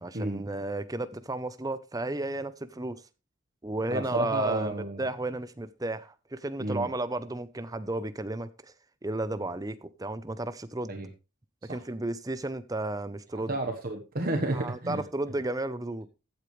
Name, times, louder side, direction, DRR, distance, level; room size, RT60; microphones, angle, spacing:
voice 1, 0.0-3.0 3.6-8.7 9.0-10.9 11.6-13.6 14.5-16.1, right 2 dB, 15° right, 0.7 m, -33 dB
voice 2, 3.9-5.0 6.6-6.9 10.9-11.1 11.7-11.8 13.3-15.0, right 2 dB, 45° right, 1.3 m, -31 dB
14.5 x 8.6 x 3.2 m
head